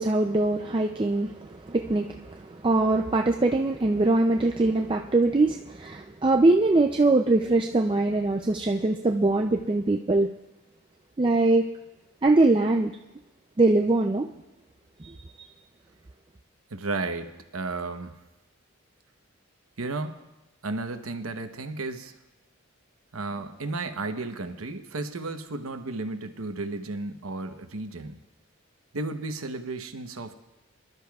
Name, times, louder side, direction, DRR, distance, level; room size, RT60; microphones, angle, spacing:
voice 1, 0.0-10.3 11.2-11.6 12.2-12.9 13.6-14.3 15.0-15.5, right 2 dB, 25° right, 3 dB, 0.4 m, -22 dB
voice 2, 16.7-18.2 19.8-20.2 20.6-22.1 23.1-28.2 28.9-30.3, right 3 dB, 75° right, 6 dB, 0.9 m, -33 dB
24.5 x 12.5 x 2.4 m, 0.99 s
head